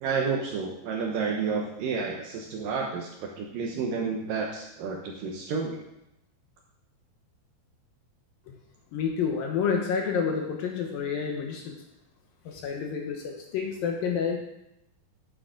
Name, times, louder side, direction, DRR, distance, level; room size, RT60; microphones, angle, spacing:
voice 1, 0.0-5.8, right 5 dB, 75° right, 0 dB, 2.0 m, -30 dB
voice 2, 8.9-11.8 12.5-14.4, left 6 dB, 75° left, 1 dB, 2.2 m, -29 dB
11.5 x 7.6 x 3.7 m, 0.85 s
omnidirectional pair, 5.0 m